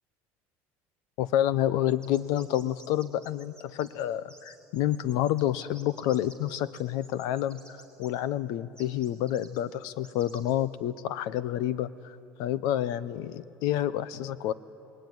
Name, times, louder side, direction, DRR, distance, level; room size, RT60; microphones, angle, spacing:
voice 1, 1.2-7.6 8.0-14.5, left 12 dB, 65° left, 16 dB, 0.9 m, -29 dB
sound 1, 1.9-8.1 8.8-10.5, right 1 dB, 15° left, 4.5 m, -53 dB
27.0 x 20.5 x 9.5 m, 2.6 s
cardioid pair, 150°, 6 cm